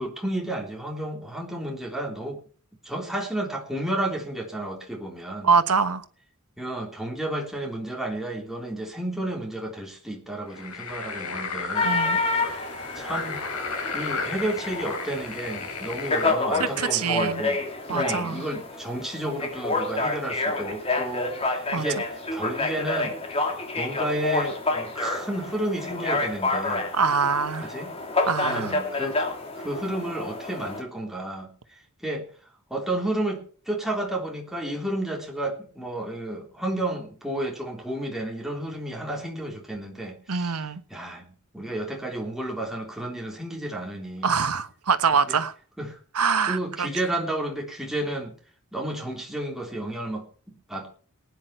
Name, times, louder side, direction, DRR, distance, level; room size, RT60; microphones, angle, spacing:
voice 1, 0.0-2.4 2.8-5.5 6.6-12.0 12.2-12.6 12.9-13.4 13.9-17.6 17.9-23.2 23.7-26.9 27.6-27.9 28.4-29.3 29.6-31.5 32.0-32.2 32.7-40.6 40.9-41.3 41.5-44.3 45.3-45.4 45.8-46.0 46.4-48.3 48.7-50.9, right 1 dB, ahead, 3.5 m, -32 dB
voice 2, 5.4-6.0 11.8-12.2 16.8-17.4 17.9-18.4 21.7-21.9 26.9-27.7 28.3-28.8 40.3-40.8 44.2-45.5 46.1-46.9, right 5 dB, 85° right, 1.2 m, -24 dB
sound 1, 10.5-16.3, left 4 dB, 85° left, 3.4 m, -34 dB
sound 2, 11.8-30.8, left 3 dB, 25° left, 2.7 m, -29 dB
19.0 x 9.8 x 4.5 m
head